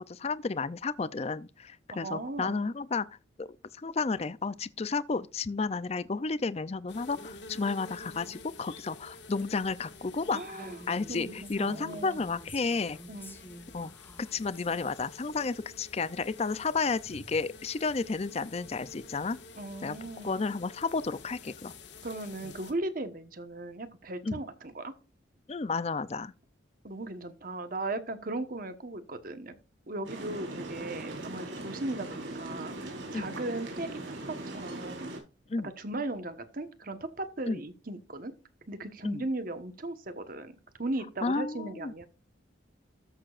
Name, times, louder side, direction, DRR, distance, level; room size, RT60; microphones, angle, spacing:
voice 1, 0.0-3.1 3.4-3.5 3.8-13.0 13.7-13.9 14.2-19.4 19.8-20.0 20.2-21.7 24.2-24.4 25.5-26.3 33.1-33.3 35.5-35.7 37.5-37.6 39.0-39.2 41.2-41.9, left 4 dB, 35° left, 0.4 m, -32 dB
voice 2, 1.9-2.6 10.3-10.8 11.1-12.2 13.1-13.3 19.5-20.4 22.0-24.9 26.8-29.5 29.9-32.8 33.1-34.0 34.3-35.1 35.8-38.3 38.7-42.1, right 2 dB, 45° right, 1.2 m, -37 dB
sound 1, 6.9-22.7, left 3 dB, 65° left, 1.7 m, -50 dB
Female speech woman speaking, 10.5-14.7, left 1 dB, 10° left, 1.4 m, -49 dB
sound 2, 30.0-35.2, right 1 dB, 80° right, 4.2 m, -40 dB
13.5 x 6.8 x 2.5 m
head